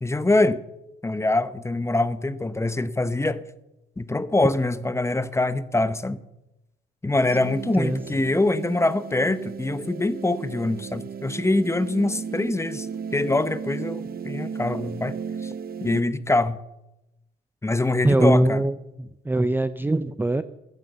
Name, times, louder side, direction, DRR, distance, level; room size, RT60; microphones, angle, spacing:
voice 1, 0.0-0.6 1.0-3.4 4.0-6.2 7.0-12.9 13.1-15.2 15.4-15.5 15.8-16.6 17.6-18.6, left 2 dB, 15° left, 14 dB, 0.9 m, -24 dB
sound 1, 7.3-16.0, right 7 dB, 50° right, 0.8 m, -35 dB
voice 2, 7.4-8.0 18.0-20.4, right 1 dB, 10° right, 12 dB, 0.6 m, -22 dB
14.0 x 9.2 x 6.8 m, 0.90 s
cardioid pair, 90°, 20 cm